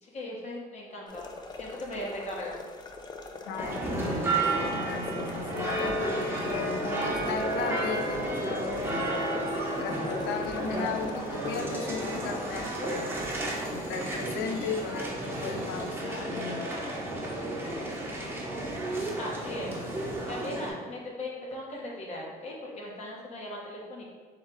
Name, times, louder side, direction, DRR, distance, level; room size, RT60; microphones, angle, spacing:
voice 1, 0.0-2.6 19.1-19.7 20.0-24.1, left 1 dB, 40° left, -2 dB, 1.0 m, -38 dB
sound 1, 1.1-12.2, left 3 dB, 25° left, 0.4 m, -43 dB
voice 2, 3.5-9.1 9.8-13.1 13.7-16.8, left 6 dB, 90° left, 8 dB, 0.4 m, -36 dB
sound 2, 3.6-20.7, right 1 dB, 15° right, 1.0 m, -32 dB
3.3 x 3.1 x 4.5 m, 1.5 s
cardioid pair, 110°, 17 cm